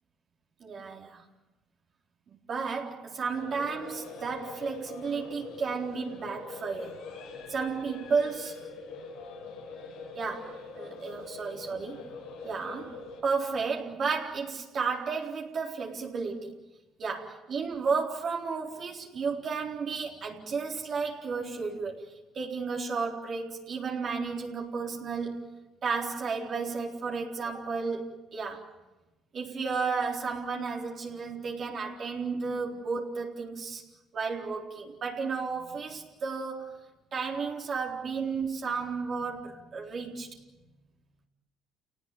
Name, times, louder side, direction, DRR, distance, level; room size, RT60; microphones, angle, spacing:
voice 1, 0.6-1.2 2.3-7.0 7.5-8.6 10.1-12.0 12.4-16.5 17.0-22.0 22.3-25.5 25.8-28.7 29.3-33.8 34.1-36.8 37.1-40.4, right 5 dB, 50° right, -1 dB, 4.1 m, -33 dB
sound 1, 3.3-13.2, left 4 dB, 80° left, 6.1 m, -43 dB
29.0 x 19.0 x 9.3 m, 1.1 s
cardioid pair, 85°, 0 cm